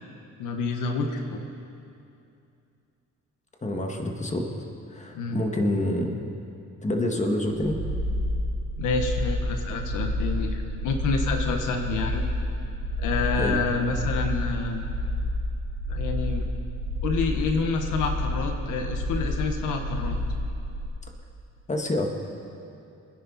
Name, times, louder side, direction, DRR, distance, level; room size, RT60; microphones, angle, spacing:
voice 1, 0.4-1.5 5.1-5.4 8.8-12.2 13.0-14.8 15.9-16.5 17.0-20.2, left 4 dB, 85° left, 4 dB, 1.4 m, -28 dB
voice 2, 3.6-4.5 4.9-6.1 6.8-7.8 13.4-13.6 21.7-22.1, left 1 dB, 25° left, 2 dB, 2.0 m, -27 dB
sound 1, 7.6-20.9, left 1 dB, 15° right, 4.6 m, -29 dB
26.5 x 10.0 x 4.2 m, 2.6 s
cardioid pair, 90°, 30 cm